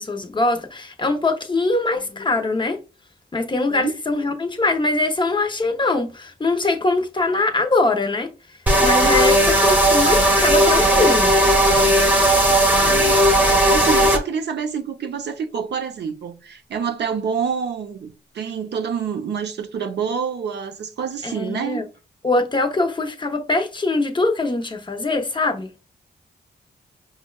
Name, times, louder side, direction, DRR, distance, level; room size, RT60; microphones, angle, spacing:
voice 1, 0.0-2.8 3.3-8.3 8.8-11.4 21.2-21.8 22.2-25.7, left 2 dB, 25° left, 0.6 m, -22 dB
sound 1, 8.7-14.2, right 1 dB, 10° right, 0.8 m, -16 dB
voice 2, 12.8-13.3 13.7-21.8, right 6 dB, 75° right, 0.6 m, -27 dB
5.2 x 2.2 x 2.2 m
cardioid pair, 80°, 18 cm